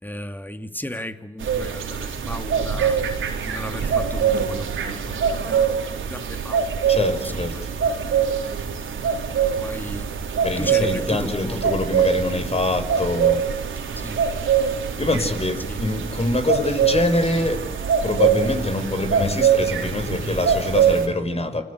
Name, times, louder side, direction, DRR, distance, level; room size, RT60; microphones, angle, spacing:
voice 1, 0.0-3.0 3.5-5.4 6.1-6.8 7.2-7.7 9.6-10.1 10.6-11.6 13.9-14.2 15.7-15.8, left 1 dB, 10° left, 8 dB, 2.7 m, -35 dB
sound 1, 1.4-21.1, right 7 dB, 85° right, 4.3 m, -23 dB
voice 2, 6.9-7.5 10.4-13.4 15.0-17.7 18.0-21.6, left 2 dB, 30° left, 7 dB, 5.7 m, -24 dB
29.0 x 22.5 x 8.2 m, 0.72 s
cardioid pair, 60°, 20 cm